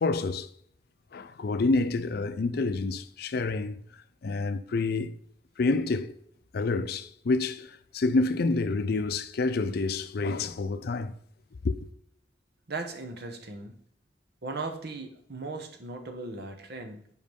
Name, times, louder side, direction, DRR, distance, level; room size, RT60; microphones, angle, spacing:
voice 1, 0.0-0.5 1.1-3.8 4.2-5.1 5.6-6.1 6.5-11.1 11.6-11.8, left 3 dB, 55° left, 0.5 m, -28 dB
voice 2, 12.7-13.7 14.4-17.1, right 3 dB, 60° right, 1.1 m, -37 dB
5.2 x 4.6 x 5.2 m
head